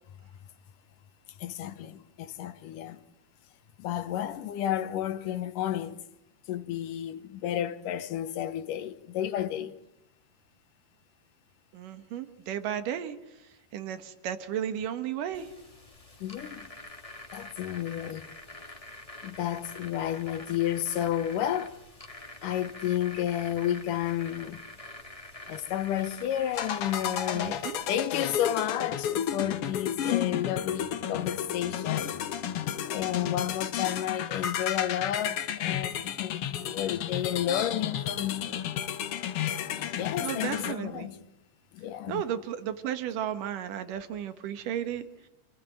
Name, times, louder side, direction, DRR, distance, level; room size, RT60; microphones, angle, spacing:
voice 1, 1.4-3.0 3.8-6.0 6.5-9.7 16.2-16.7 17.3-18.3 19.2-21.8 22.4-24.6 25.5-32.2 32.9-38.6 39.7-41.2 41.7-42.2, left 11 dB, 85° left, 2.7 m, -31 dB
voice 2, 11.7-13.2 13.7-15.5 27.3-27.8 40.2-41.1 42.1-45.1, right 10 dB, 85° right, 3.1 m, -34 dB
sound 1, 15.3-27.9, left 2 dB, 15° left, 1.5 m, -46 dB
sound 2, 26.5-40.7, left 9 dB, 60° left, 1.6 m, -32 dB
28.0 x 18.0 x 9.1 m
omnidirectional pair, 3.7 m